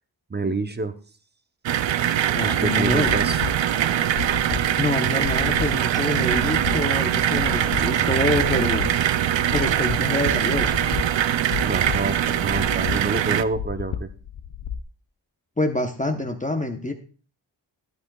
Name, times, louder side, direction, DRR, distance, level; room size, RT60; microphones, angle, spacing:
voice 1, 0.3-0.9 2.4-3.5 11.6-14.1, right 3 dB, 20° right, 9 dB, 0.7 m, -27 dB
sound 1, 1.7-13.4, right 10 dB, 75° right, 0.5 m, -22 dB
voice 2, 2.3-3.1 4.8-9.0 9.5-10.7 15.6-16.9, left 2 dB, 15° left, 4 dB, 0.8 m, -26 dB
sound 2, 2.9-14.8, left 8 dB, 85° left, 0.7 m, -33 dB
11.5 x 11.0 x 2.3 m, 0.38 s
wide cardioid pair, 110°, 46 cm